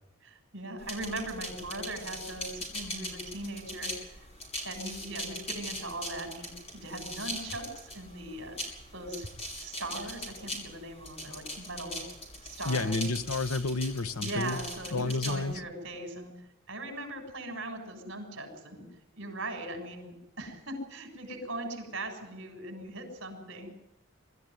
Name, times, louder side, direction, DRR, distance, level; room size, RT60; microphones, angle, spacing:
voice 1, 0.2-4.1 4.6-9.3 9.6-12.0 12.4-13.0 14.2-16.3 16.7-18.9 19.1-23.7, right 2 dB, 55° right, 4 dB, 7.0 m, -39 dB
sound 1, 0.8-15.6, left 1 dB, 30° left, 5.7 m, -41 dB
voice 2, 12.7-14.6 14.9-15.5, left 3 dB, 90° left, 12 dB, 1.1 m, -30 dB
24.0 x 13.5 x 9.7 m, 0.90 s
head